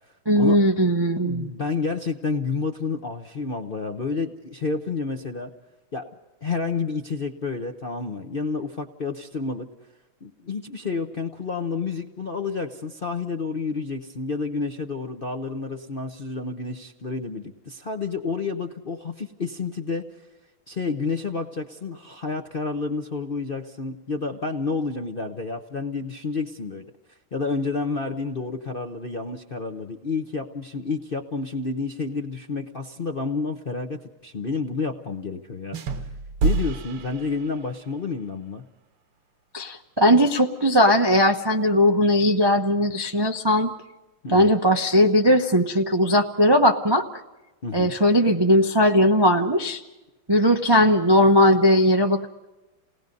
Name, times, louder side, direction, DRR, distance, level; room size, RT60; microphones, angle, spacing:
voice 1, 0.3-1.5 39.5-43.7 44.3-47.0 47.7-49.8 50.3-52.3, equal, 35° right, 3 dB, 0.4 m, -19 dB
voice 2, 1.2-5.5 5.9-6.1 6.4-9.7 10.2-20.0 20.7-36.1 36.4-38.6 44.2-44.5 47.6-47.9, left 4 dB, 45° left, 3 dB, 0.7 m, -30 dB
sound 1, 35.7-37.9, right 4 dB, 60° right, 1.5 m, -28 dB
29.0 x 18.5 x 5.4 m, 1.0 s
omnidirectional pair, 2.3 m